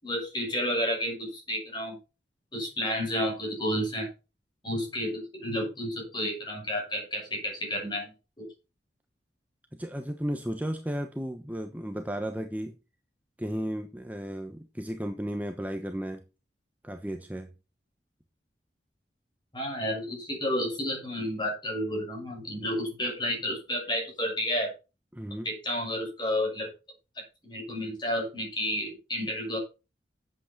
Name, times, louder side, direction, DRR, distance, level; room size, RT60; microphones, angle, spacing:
voice 1, 0.0-2.0 2.5-4.1 4.6-8.5 19.5-24.7 25.4-26.7 27.4-29.6, equal, 25° left, 6.2 m, -31 dB
voice 2, 9.7-12.8 13.4-16.2 16.8-17.5 25.1-25.5, equal, 10° right, 0.9 m, -34 dB
11.5 x 8.1 x 4.3 m
head